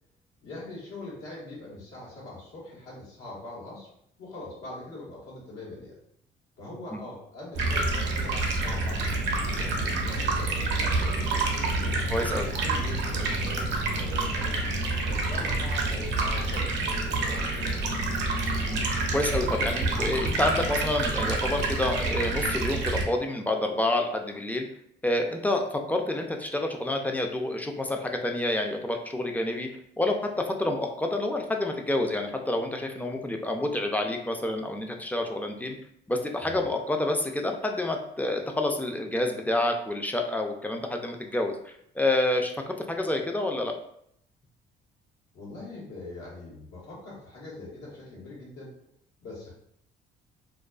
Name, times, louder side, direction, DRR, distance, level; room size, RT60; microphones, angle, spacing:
voice 1, 0.4-3.9 4.2-5.9 6.6-12.0 12.6-14.6 15.1-18.0 36.4-36.6 45.3-48.7 49.2-49.5, left 2 dB, 90° left, -6 dB, 1.1 m, -42 dB
Stream, 7.5-23.0, right 2 dB, 70° right, 0.6 m, -28 dB
voice 2, 12.1-12.5 18.6-24.6 25.0-29.7 30.0-35.8 36.1-43.7, left 1 dB, 10° left, 3 dB, 0.3 m, -28 dB
2.3 x 2.3 x 2.3 m, 0.71 s
supercardioid pair, 85°, 19 cm